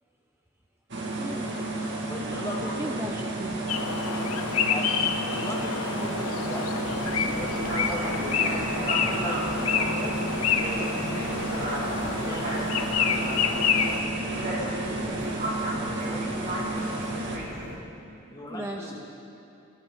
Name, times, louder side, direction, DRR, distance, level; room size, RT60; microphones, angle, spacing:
sound 1, 0.9-17.4, right 2 dB, 55° right, 2.1 m, -32 dB
voice 1, 1.2-1.5 2.6-3.6 18.5-19.0, right 1 dB, 10° right, 1 dB, 0.6 m, -36 dB
voice 2, 2.1-3.0 4.7-4.9 5.2-6.7 7.2-8.5 9.1-10.6 11.5-12.6 13.6-16.8 18.3-19.0, left 1 dB, 20° left, -3 dB, 2.4 m, -39 dB
sound 2, 3.7-14.0, left 6 dB, 85° left, 1.0 m, -28 dB
sound 3, 6.8-17.8, right 1 dB, 40° right, 3.0 m, -35 dB
26.0 x 13.5 x 3.9 m, 2.8 s
head